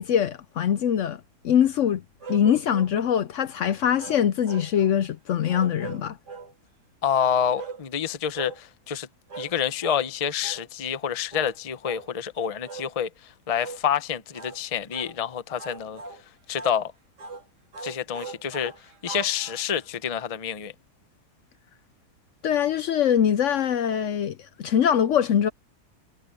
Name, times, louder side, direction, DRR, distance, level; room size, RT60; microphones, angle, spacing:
voice 1, 0.0-2.0 2.3-6.2 22.4-25.5, left 9 dB, 65° left, 0.8 m, -23 dB
sound 1, 2.2-3.0 4.0-5.0 5.5-6.5 7.6-7.8 8.3-8.6 9.3-9.6 9.8-10.1 10.4-10.7 11.3-11.5 11.8-12.1 12.6-12.9 13.5-13.8 14.3-14.6 14.9-15.2 15.6-16.2 16.5-16.8 17.2-17.4 17.7-19.9, right 5 dB, 85° right, 3.3 m, -40 dB
voice 2, 7.0-9.1 9.4-16.0 16.5-16.9 17.8-18.7 19.0-20.7, left 8 dB, 30° left, 0.6 m, -28 dB
omnidirectional pair, 1.8 m